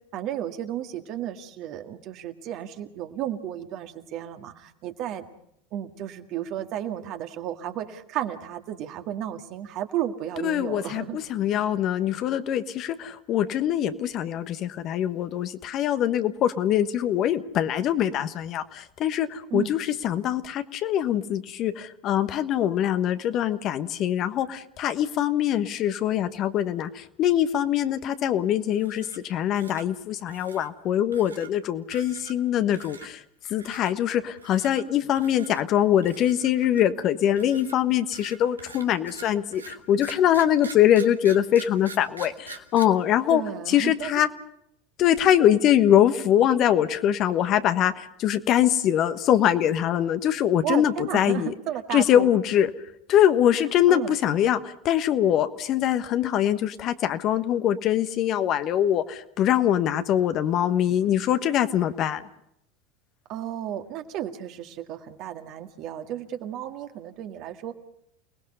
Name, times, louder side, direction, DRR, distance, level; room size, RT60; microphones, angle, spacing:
voice 1, 0.1-5.3 5.7-11.2 19.5-19.7 43.3-44.1 50.6-52.3 53.9-54.2 63.3-67.7, right 11 dB, 50° right, 6 dB, 1.9 m, -33 dB
voice 2, 10.4-43.4 43.7-44.3 45.0-51.5 51.9-52.7 53.1-62.2, left 10 dB, 45° left, 10 dB, 1.3 m, -23 dB
sound 1, 28.7-29.3 29.5-29.9 30.3-30.7 31.1-31.5 31.9-32.5 32.7-33.1 33.6-33.9 34.4-34.8 35.2-35.6 36.0-37.0 37.4-42.8, right 5 dB, 90° right, 1.5 m, -44 dB
29.5 x 19.5 x 5.5 m, 0.74 s
figure-of-eight pair, 80°, 0 cm